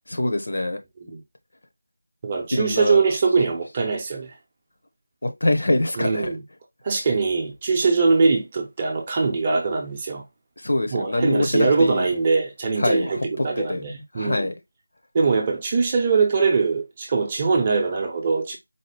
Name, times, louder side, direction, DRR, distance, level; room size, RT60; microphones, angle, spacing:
voice 1, 0.1-0.8 2.5-3.0 5.2-6.3 10.6-12.1 12.8-13.8 14.1-14.5, left 1 dB, 60° left, 0.8 m, -24 dB
voice 2, 2.2-4.3 6.0-6.4 6.8-10.2 10.9-14.5 15.1-18.6, right 4 dB, 20° right, 0.6 m, -22 dB
4.2 x 2.1 x 3.3 m
figure-of-eight pair, 170°, 0 cm